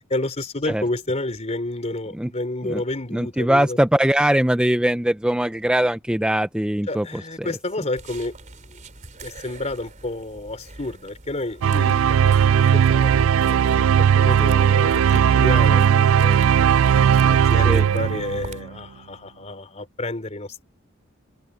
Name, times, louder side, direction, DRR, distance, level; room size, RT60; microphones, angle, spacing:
voice 1, 0.0-3.8 6.9-8.4 8.7-8.8 9.2-12.3 12.7-16.7 17.3-20.6, left 2 dB, 35° left, 4.1 m, -30 dB
voice 2, 3.1-7.6 17.6-17.8, right 1 dB, 5° right, 0.5 m, -21 dB
sound 1, 8.0-18.6, right 2 dB, 40° right, 3.6 m, -44 dB
sound 2, 11.6-18.7, right 8 dB, 75° right, 0.3 m, -17 dB
open air
head